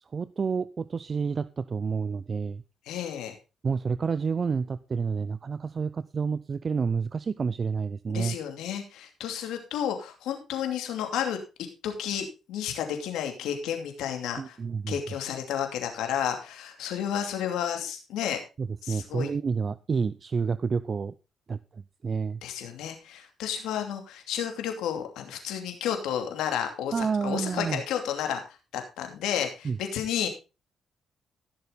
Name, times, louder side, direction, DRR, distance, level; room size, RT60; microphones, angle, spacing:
voice 1, 0.1-2.6 3.6-8.4 14.4-15.0 18.6-21.1 21.5-21.6 22.0-22.4 26.9-27.8 29.6-29.8, right 5 dB, 40° right, 16 dB, 0.5 m, -29 dB
voice 2, 2.9-3.3 8.1-11.4 11.8-14.6 14.9-18.4 18.8-19.3 22.4-30.3, left 9 dB, 90° left, 5 dB, 2.7 m, -31 dB
15.5 x 6.9 x 4.0 m, 0.30 s
cardioid pair, 90°, 0 cm